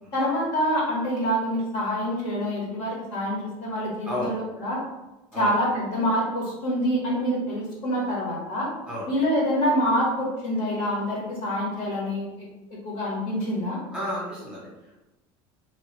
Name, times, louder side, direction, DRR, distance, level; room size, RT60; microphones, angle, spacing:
voice 1, 0.1-4.8 5.3-8.7 9.1-12.3 12.7-13.8, equal, 60° left, -4 dB, 1.4 m, -26 dB
voice 2, 13.9-14.7, equal, 5° right, -6 dB, 1.0 m, -31 dB
3.1 x 2.3 x 3.2 m, 1.0 s
cardioid pair, 150°, 13 cm